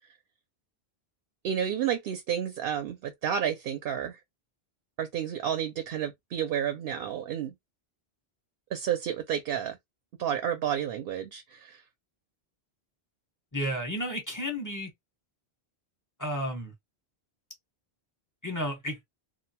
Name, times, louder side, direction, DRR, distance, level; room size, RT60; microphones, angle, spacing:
voice 1, 1.4-4.2 5.0-7.5 8.7-9.8 10.2-11.8, right 9 dB, 65° right, 0.7 m, -31 dB
voice 2, 13.5-14.9 16.2-16.7 18.4-19.0, equal, 20° left, 0.8 m, -32 dB
2.6 x 2.2 x 2.7 m
omnidirectional pair, 1.1 m